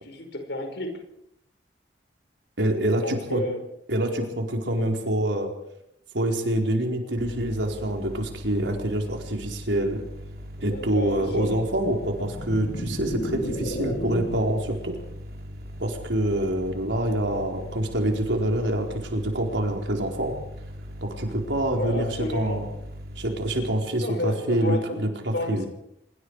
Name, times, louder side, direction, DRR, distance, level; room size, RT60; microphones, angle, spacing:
voice 1, 0.0-1.0 3.0-3.6 4.8-4.9 10.7-11.7 21.7-22.6 24.0-25.0 25.3-25.7, left 1 dB, 70° left, 5 dB, 5.4 m, -32 dB
voice 2, 2.6-3.4 3.9-5.5 6.1-10.0 10.6-15.0 15.8-20.3 21.0-22.7 23.2-25.6, right 1 dB, 90° right, 2 dB, 4.5 m, -26 dB
sound 1, 7.2-23.7, equal, 60° right, 3.2 m, -40 dB
sound 2, 12.1-14.6, left 1 dB, 50° left, 2.4 m, -33 dB
25.5 x 23.0 x 4.9 m, 0.80 s
head